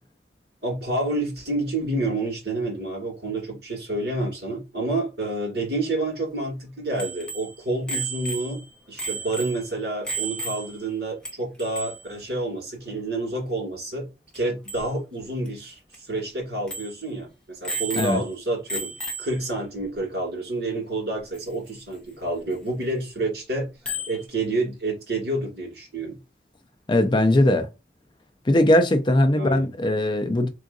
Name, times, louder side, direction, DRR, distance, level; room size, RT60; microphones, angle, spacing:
voice 1, 0.6-14.1 14.3-23.7 24.1-26.2 29.4-29.7, right 2 dB, 60° right, 2.3 m, -29 dB
Bicycle bell, 7.0-11.0 11.3-11.4 11.6-12.1 14.3-14.4 14.7-14.9 15.5-15.6 15.9-16.0 16.7-17.0 17.6-18.4 18.7-19.5 21.4-21.5 23.9-24.2, right 2 dB, 5° left, 0.8 m, -33 dB
voice 2, 26.9-27.7 28.5-30.5, left 1 dB, 25° left, 0.4 m, -19 dB
3.7 x 3.6 x 2.6 m
head